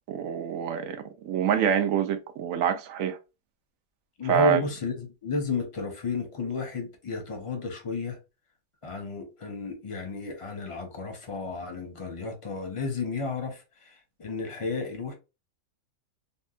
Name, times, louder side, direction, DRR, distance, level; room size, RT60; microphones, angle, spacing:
voice 1, 0.1-3.2 4.3-4.6, right 9 dB, 75° right, 0.9 m, -26 dB
voice 2, 4.2-8.2 8.8-13.9 14.2-15.1, left 4 dB, 30° left, 0.6 m, -32 dB
3.5 x 2.2 x 2.4 m
omnidirectional pair, 1.5 m